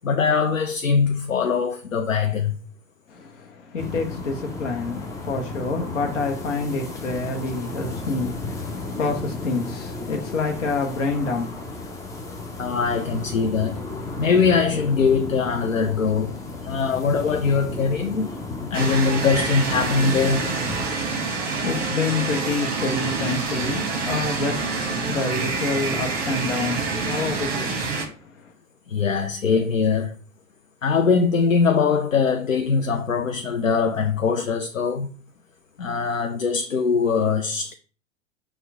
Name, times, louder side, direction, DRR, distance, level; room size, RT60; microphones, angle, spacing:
voice 1, 0.0-2.5 12.6-13.8 14.2-18.3 18.7-20.5 28.9-30.2 30.8-35.1 35.8-37.7, left 5 dB, 90° left, 0.5 m, -22 dB
voice 2, 3.1-11.9 21.2-28.5, left 3 dB, 65° left, 0.9 m, -28 dB
sound 1, 3.8-20.9, left 3 dB, 10° left, 0.4 m, -34 dB
sound 2, 18.7-28.1, right 4 dB, 25° right, 1.0 m, -27 dB
4.3 x 2.3 x 4.7 m
figure-of-eight pair, 95°, 38 cm